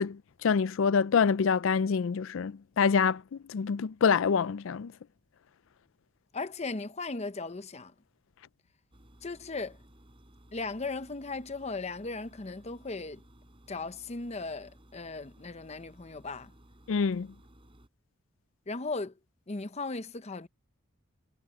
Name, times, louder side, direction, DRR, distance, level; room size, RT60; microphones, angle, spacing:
voice 1, 0.0-4.9 16.9-17.3, left 6 dB, 65° left, 0.4 m, -26 dB
voice 2, 6.3-7.9 9.2-9.8 10.5-13.2 13.7-16.5 18.7-19.1 19.5-20.5, left 3 dB, 30° left, 0.7 m, -37 dB
sound 1, 8.9-17.9, equal, 25° right, 4.7 m, -58 dB
head